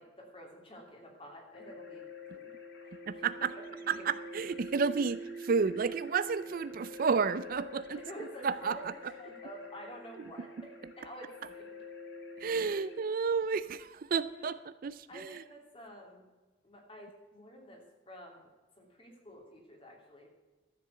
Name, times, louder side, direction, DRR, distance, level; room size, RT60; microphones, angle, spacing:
voice 1, 0.0-2.0 2.3-2.5 2.9-4.1 8.0-11.7 14.3-14.6 15.1-16.2 16.6-18.5 18.8-20.3, equal, 30° left, 1 dB, 2.9 m, -49 dB
sound 1, 1.5-13.0, equal, 60° left, 2.2 m, -46 dB
voice 2, 3.1-3.5 3.9-8.0 8.4-8.8 12.4-15.4, right 5 dB, 45° right, 14 dB, 0.4 m, -31 dB
13.0 x 7.6 x 6.9 m, 1.2 s
head